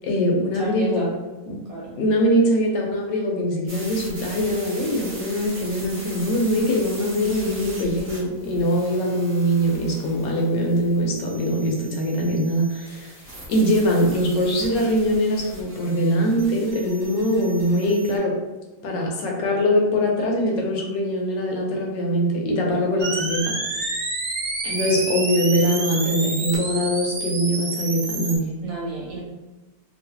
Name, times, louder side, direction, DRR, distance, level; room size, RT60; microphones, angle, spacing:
voice 1, 0.0-1.1 1.5-1.6 2.0-13.1 13.5-18.3 18.8-24.0 24.6-28.5, equal, 80° left, 0 dB, 1.4 m, -22 dB
voice 2, 0.5-1.2 1.6-2.0 28.6-29.2, right 4 dB, 55° right, -5 dB, 1.2 m, -31 dB
sound 1, 3.7-18.2, right 1 dB, 40° right, 0.8 m, -40 dB
sound 2, 23.0-28.4, right 3 dB, 70° right, 0.6 m, -28 dB
3.0 x 2.8 x 2.7 m, 1.1 s
omnidirectional pair, 1.9 m